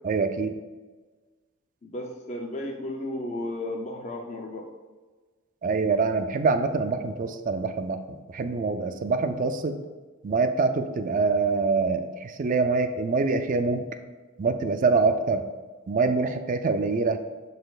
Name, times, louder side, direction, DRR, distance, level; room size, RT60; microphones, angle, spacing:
voice 1, 0.0-0.6 5.6-8.0 8.3-9.8 10.2-13.8 14.4-15.4 15.9-17.2, right 4 dB, 40° right, 8 dB, 0.4 m, -25 dB
voice 2, 1.8-4.7, left 1 dB, 30° left, 0 dB, 0.5 m, -34 dB
11.5 x 4.0 x 2.4 m, 1.3 s
head